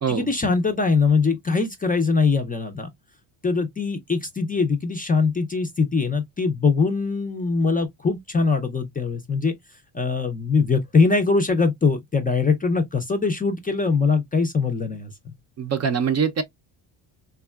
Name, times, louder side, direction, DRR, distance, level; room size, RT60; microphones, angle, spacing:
voice 1, 0.1-2.9 3.4-9.5 9.9-15.3, left 4 dB, 20° left, 0.4 m, -22 dB
voice 2, 15.6-16.4, right 6 dB, 35° right, 0.5 m, -23 dB
3.5 x 2.2 x 2.2 m
cardioid pair, 105°, 48 cm